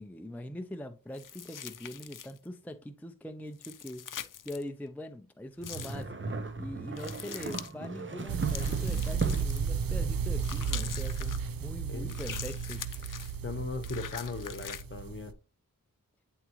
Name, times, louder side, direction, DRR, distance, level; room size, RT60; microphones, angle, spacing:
voice 1, 0.0-4.0 4.4-6.1 6.6-13.1, left 1 dB, 5° left, 0.5 m, -42 dB
sound 1, 1.1-2.5 3.5-4.6 5.6-6.0 7.0-7.7 8.5-9.8 10.4-11.4 12.1-13.3 13.8-14.8, left 8 dB, 65° left, 0.6 m, -43 dB
sound 2, 5.6-9.7, right 4 dB, 35° right, 0.9 m, -37 dB
sound 3, 8.3-15.3, right 6 dB, 80° right, 0.6 m, -33 dB
voice 2, 11.9-12.4 13.4-15.3, left 3 dB, 35° left, 1.0 m, -38 dB
9.2 x 3.6 x 3.0 m
wide cardioid pair, 70°, 34 cm